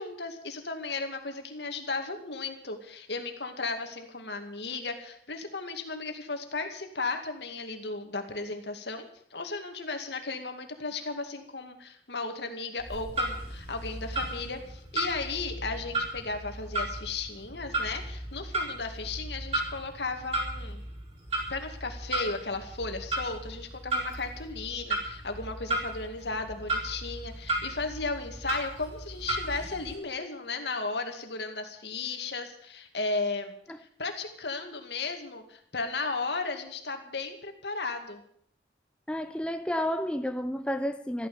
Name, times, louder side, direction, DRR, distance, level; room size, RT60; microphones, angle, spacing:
voice 1, 0.0-20.8 21.5-38.2, left 3 dB, 80° left, 2.3 m, -35 dB
Clock, 12.8-29.9, right 2 dB, 35° right, 4.7 m, -35 dB
voice 2, 39.1-41.3, equal, 5° left, 0.6 m, -31 dB
14.0 x 13.0 x 7.0 m
head